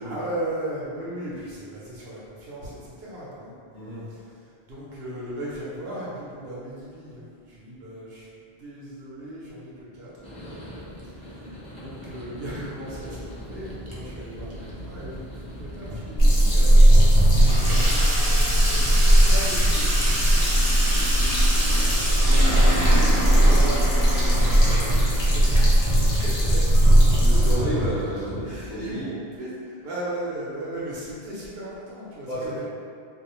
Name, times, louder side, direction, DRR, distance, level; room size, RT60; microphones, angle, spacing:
voice 1, 0.0-3.6 4.1-10.1 11.0-20.6 21.4-27.6 28.4-32.6, right 1 dB, 80° right, -7 dB, 0.8 m, -37 dB
voice 2, 3.7-4.1 18.6-19.0 27.2-29.1 32.2-32.6, equal, 45° left, -10 dB, 0.9 m, -32 dB
sound 1, 10.2-16.5, equal, 10° left, 0.6 m, -42 dB
Water tap faucet / Sink (filling or washing), 12.9-28.9, right 1 dB, 45° right, 0.4 m, -28 dB
sound 2, 16.2-27.5, right 1 dB, 80° left, 1.0 m, -18 dB
2.4 x 2.1 x 2.9 m, 2.3 s
omnidirectional pair, 1.0 m